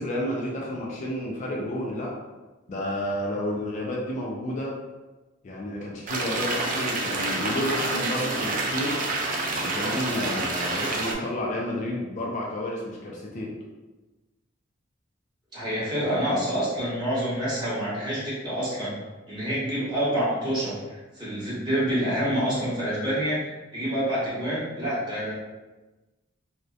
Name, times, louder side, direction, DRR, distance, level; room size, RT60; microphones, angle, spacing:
voice 1, 0.0-2.1 2.7-4.7 5.4-9.0 9.5-13.5, left 1 dB, 40° left, -3 dB, 0.3 m, -31 dB
sound 1, 6.1-11.1, right 2 dB, 45° right, 0.4 m, -28 dB
voice 2, 15.5-19.0 19.3-25.3, equal, 20° right, -10 dB, 1.0 m, -27 dB
2.6 x 2.1 x 2.3 m, 1.2 s
head